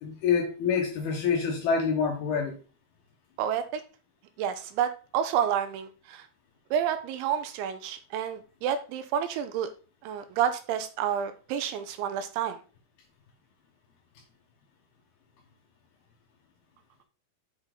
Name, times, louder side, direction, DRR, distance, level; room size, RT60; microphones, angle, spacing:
voice 1, 0.0-2.5, left 6 dB, 70° left, 2.5 m, -26 dB
voice 2, 3.4-3.8 4.4-6.3 6.7-9.7 10.0-12.6, right 9 dB, 85° right, 2.9 m, -29 dB
8.0 x 5.5 x 3.8 m
omnidirectional pair, 5.5 m